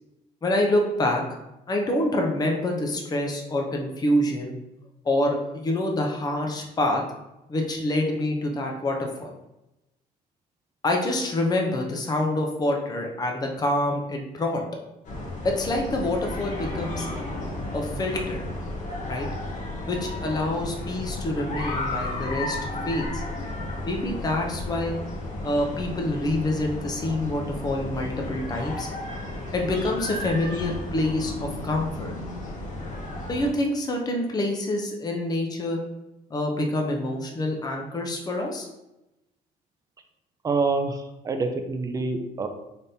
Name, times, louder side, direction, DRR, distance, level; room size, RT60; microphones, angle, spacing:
voice 1, 0.4-1.2 1.7-4.5 5.0-7.0 7.5-9.3 10.8-14.6 15.4-17.1 17.7-18.5 19.1-19.3 19.9-22.6 22.9-23.2 23.9-25.0 25.4-28.9 29.5-32.2 33.3-35.8 36.3-38.7, left 1 dB, 25° left, 1 dB, 0.6 m, -26 dB
sound 1, 15.0-33.5, left 2 dB, 50° left, 1.0 m, -33 dB
voice 2, 40.4-42.5, right 3 dB, 20° right, 6 dB, 0.4 m, -26 dB
4.0 x 3.4 x 2.7 m, 0.94 s
cardioid pair, 110°, 17 cm